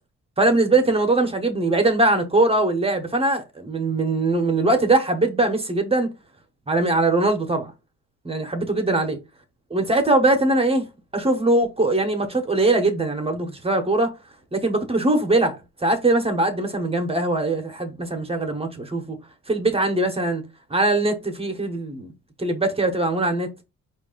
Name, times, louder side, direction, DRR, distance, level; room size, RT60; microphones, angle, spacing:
voice 1, 0.4-6.1 6.7-7.7 8.2-9.2 9.7-10.9 11.1-14.1 14.5-19.2 19.5-20.4 20.7-22.1 22.4-23.5, right 2 dB, 20° right, 0.9 m, -21 dB
4.6 x 2.5 x 3.8 m
cardioid pair, 90°, 30 cm